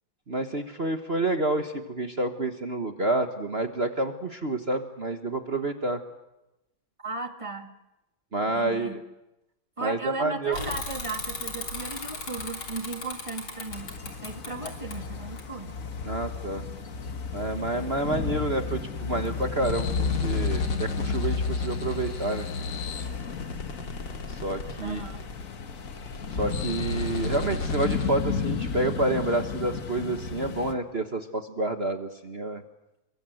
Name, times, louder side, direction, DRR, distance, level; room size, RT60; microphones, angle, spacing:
voice 1, 0.3-6.0 8.3-9.0 9.8-10.5 14.6-14.7 16.0-16.6 17.3-19.9 20.2-22.5 24.3-25.0 26.3-32.6, right 2 dB, 35° right, 6 dB, 1.4 m, -29 dB
voice 2, 7.0-7.7 8.5-9.0 9.8-15.7 24.8-25.2, right 3 dB, 15° right, 5 dB, 2.0 m, -36 dB
Bicycle / Mechanisms, 10.5-16.0, left 3 dB, 85° left, 4.3 m, -37 dB
sound 1, 13.7-30.7, left 5 dB, 45° left, 1.7 m, -33 dB
sound 2, 19.6-28.1, left 2 dB, 65° left, 3.0 m, -34 dB
29.0 x 23.0 x 7.9 m, 0.96 s
omnidirectional pair, 2.2 m